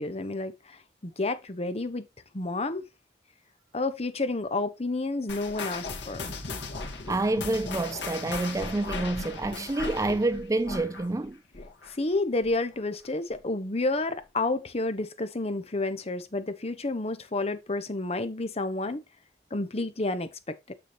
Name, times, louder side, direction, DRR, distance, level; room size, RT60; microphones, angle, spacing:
voice 1, 0.0-2.1 2.3-2.8 3.7-6.3 11.9-19.0 19.5-20.7, left 2 dB, 35° left, 1.0 m, -30 dB
sound 1, 5.3-12.1 12.4-12.7 13.3-13.4 14.2-14.3, left 3 dB, 85° left, 2.1 m, -37 dB
voice 2, 7.1-11.4, right 2 dB, 20° right, 0.4 m, -28 dB
7.1 x 6.9 x 3.1 m
head